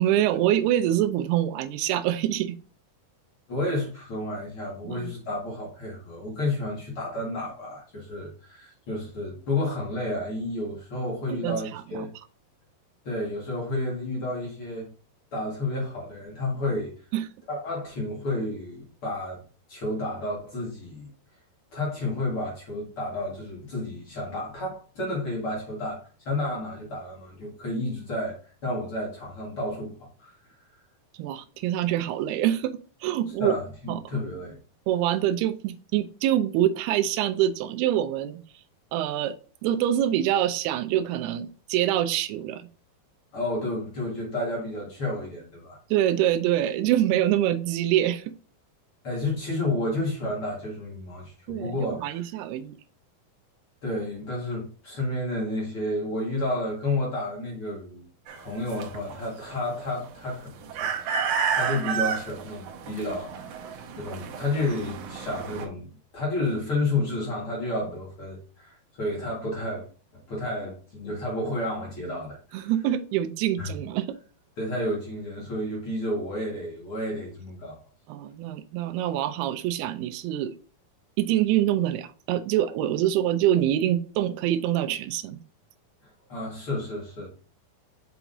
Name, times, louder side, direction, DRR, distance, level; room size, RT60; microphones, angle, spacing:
voice 1, 0.0-2.6 4.8-5.1 11.3-12.1 17.1-17.3 31.2-33.5 33.9-34.0 34.9-38.4 38.9-39.3 39.6-42.7 45.9-48.3 51.5-52.8 72.5-74.1 78.1-80.5 81.2-85.4, right 12 dB, 90° right, 2.6 m, -25 dB
voice 2, 3.5-12.1 13.0-14.9 15.3-16.9 17.5-19.4 19.7-21.1 21.7-30.4 33.4-34.6 43.3-45.8 49.0-52.2 53.8-58.0 58.3-65.9 66.1-69.9 70.1-72.7 73.6-73.7 74.6-77.8 86.0-87.3, left 2 dB, 45° left, 2.2 m, -31 dB
sound 1, 58.3-65.6, right 6 dB, 75° right, 2.4 m, -31 dB
5.9 x 5.9 x 2.7 m
omnidirectional pair, 4.5 m